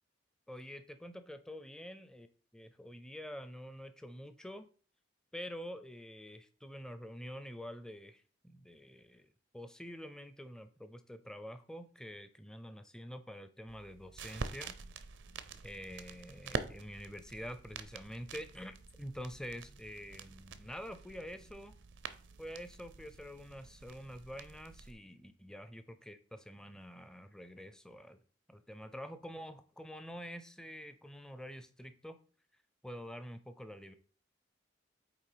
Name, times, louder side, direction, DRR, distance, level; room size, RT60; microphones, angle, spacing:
voice 1, 0.5-2.3 2.5-4.7 5.3-14.8 15.6-21.8 22.4-28.2 28.5-32.2 32.8-33.9, equal, 5° left, 10 dB, 0.5 m, -47 dB
sound 1, 13.7-24.9, right 4 dB, 80° right, 0.6 m, -46 dB
8.6 x 3.2 x 4.9 m, 0.40 s
head